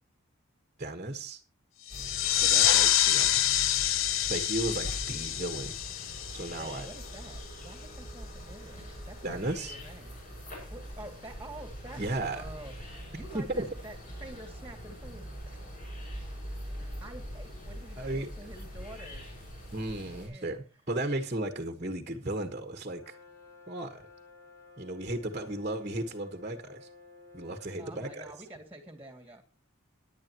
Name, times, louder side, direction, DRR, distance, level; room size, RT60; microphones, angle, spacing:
voice 1, 0.8-1.4 2.4-3.5 4.3-6.9 9.2-9.7 12.0-12.5 13.3-13.7 18.0-18.3 19.7-23.1 23.7-24.1 24.8-26.9 27.3-28.3, right 1 dB, 35° right, 1.3 m, -35 dB
sound 1, 1.9-7.2, left 12 dB, 65° left, 0.6 m, -27 dB
sound 2, 1.9-20.3, equal, 40° left, 6.7 m, -43 dB
voice 2, 6.6-10.2 10.7-12.0 12.3-15.6 16.8-19.3 19.9-20.6 27.8-29.4, right 1 dB, 10° right, 2.3 m, -48 dB
Brass instrument, 22.9-27.8, left 3 dB, 15° left, 2.6 m, -54 dB
17.0 x 10.5 x 3.0 m
head